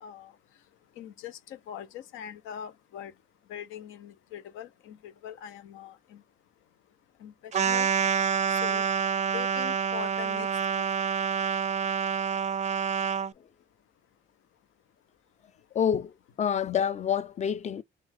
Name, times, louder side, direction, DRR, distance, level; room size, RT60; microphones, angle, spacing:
voice 1, 0.0-0.3 1.0-3.1 3.5-6.2 7.2-7.9 8.5-8.8 9.3-10.5 10.8-10.9, left 9 dB, 90° left, 0.7 m, -42 dB
sound 1, 7.5-13.3, right 7 dB, 35° right, 0.4 m, -27 dB
voice 2, 15.7-17.8, left 8 dB, 35° left, 0.4 m, -28 dB
3.8 x 2.4 x 4.3 m
cardioid pair, 90°, 20 cm